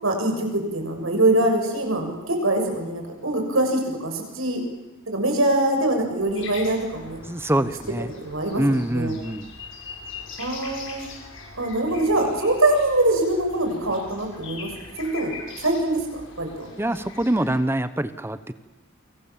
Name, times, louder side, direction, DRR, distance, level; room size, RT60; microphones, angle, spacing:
voice 1, 0.0-4.6 5.1-7.2 8.2-9.1 10.4-11.1 11.6-14.7 15.0-16.7, right 1 dB, 75° right, 3 dB, 7.1 m, -23 dB
sound 1, 6.3-17.6, left 4 dB, 65° left, 7.4 m, -41 dB
voice 2, 7.3-8.1 8.6-9.5 16.8-18.5, right 1 dB, 10° right, 12 dB, 0.9 m, -24 dB
29.0 x 25.5 x 7.5 m, 1.1 s
head